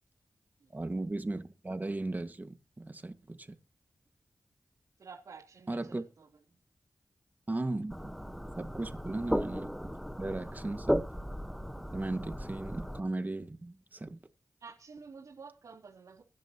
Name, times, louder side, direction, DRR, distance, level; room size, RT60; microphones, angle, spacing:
voice 1, 0.7-3.5 5.7-6.0 7.5-8.2 8.6-11.0 11.9-14.2, right 2 dB, 30° right, 1.9 m, -37 dB
voice 2, 5.0-6.3 9.0-9.1 14.6-16.2, right 5 dB, 90° right, 3.4 m, -50 dB
sound 1, 7.9-13.0, equal, ahead, 1.3 m, -36 dB
24.0 x 10.5 x 3.0 m
cardioid pair, 65°, 6 cm